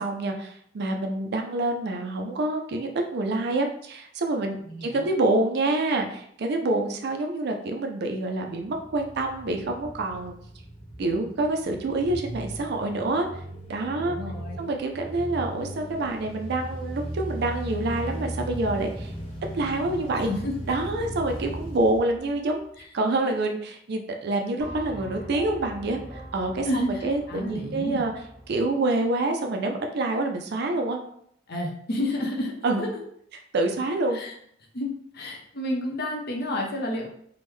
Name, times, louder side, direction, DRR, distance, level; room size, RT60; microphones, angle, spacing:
voice 1, 0.0-10.3 11.0-13.3 13.7-14.2 14.6-19.1 19.5-20.3 20.7-22.6 22.9-28.1 28.5-31.0 32.6-32.8 33.5-34.2, right 2 dB, 60° right, 3 dB, 0.4 m, -27 dB
voice 2, 4.6-5.1 14.0-14.6 20.1-20.5 22.8-22.9 26.6-28.0 31.5-33.1 34.1-34.3 34.7-37.1, left 1 dB, 60° left, 0 dB, 0.7 m, -31 dB
sound 1, 8.6-22.8, right 1 dB, 30° left, 1.0 m, -37 dB
sound 2, 24.6-28.8, right 1 dB, 15° right, 1.1 m, -42 dB
3.5 x 2.1 x 3.1 m, 0.66 s
head